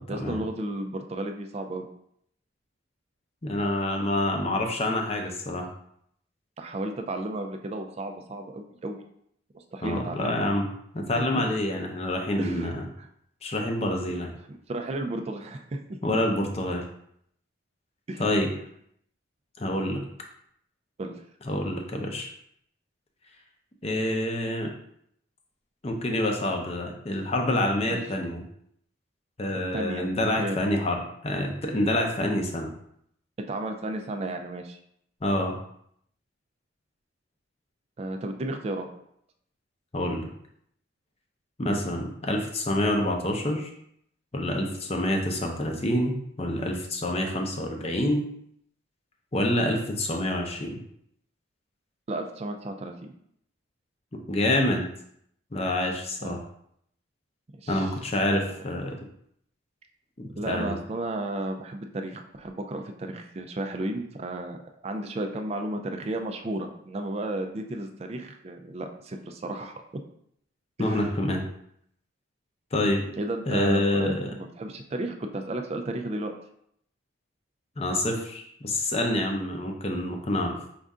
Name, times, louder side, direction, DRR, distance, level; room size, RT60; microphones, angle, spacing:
voice 1, 0.1-1.9 6.6-9.0 9.5-10.4 12.4-12.7 13.0-13.1 14.5-15.8 18.1-18.3 21.0-21.1 27.8-28.0 29.7-30.1 30.4-30.6 33.5-34.8 38.0-38.9 52.1-53.1 56.2-56.4 57.6-57.9 58.3-58.6 60.4-64.6 64.8-69.8 70.8-71.1 73.2-76.3, right 1 dB, 30° right, 4 dB, 0.3 m, -33 dB
voice 2, 3.4-5.7 9.8-10.7 10.9-12.8 13.4-14.3 16.0-16.8 18.2-18.5 19.6-20.0 21.4-22.3 23.8-24.7 25.8-28.4 29.4-32.7 35.2-35.6 39.9-40.3 41.6-43.7 44.3-48.3 49.3-50.8 54.3-54.9 55.5-56.4 57.7-59.0 60.2-60.7 70.8-71.4 72.7-73.0 73.5-74.3 77.8-80.6, left 1 dB, 30° left, 2 dB, 0.6 m, -27 dB
5.3 x 2.5 x 3.5 m, 0.71 s
head